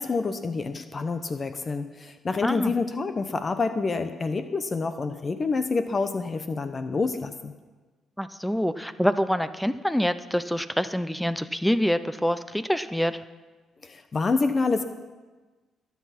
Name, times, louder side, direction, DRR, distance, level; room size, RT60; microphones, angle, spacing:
voice 1, 0.0-7.5 13.8-14.8, left 4 dB, 35° left, 9 dB, 0.8 m, -27 dB
voice 2, 2.4-2.7 8.2-13.2, equal, 5° left, 13 dB, 0.5 m, -26 dB
22.0 x 8.4 x 5.9 m, 1.3 s
cardioid pair, 90°, 0 cm